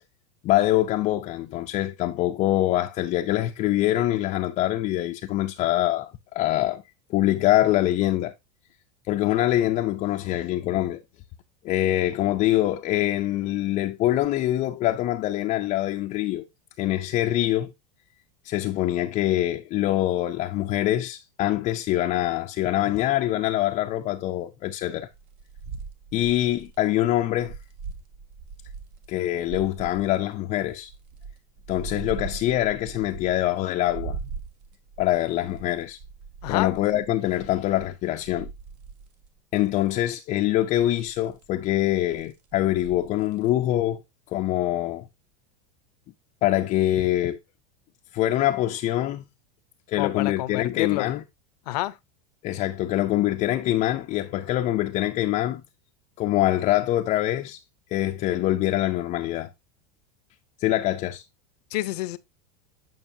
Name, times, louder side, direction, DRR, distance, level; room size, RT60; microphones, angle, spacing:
voice 1, 0.4-6.8 7.1-8.3 9.1-11.0 11.6-16.4 16.8-17.7 18.4-25.1 26.1-27.6 29.1-30.9 31.7-34.2 35.0-36.0 36.5-38.5 39.5-44.0 44.3-45.0 46.4-47.4 48.1-49.2 49.9-51.2 52.4-55.6 56.2-57.6 57.9-59.5 60.6-61.2, left 14 dB, 35° left, 0.5 m, -24 dB
sound 1, 25.1-29.1 29.4-30.2 30.7-33.6 33.9-39.4 39.8-40.2 40.7-43.5, right 5 dB, 55° right, 1.5 m, -40 dB
voice 2, 36.4-36.7 50.0-51.1 51.7-52.0 61.7-62.2, left 17 dB, 75° left, 0.6 m, -28 dB
9.0 x 5.4 x 2.6 m
supercardioid pair, 135°, 21 cm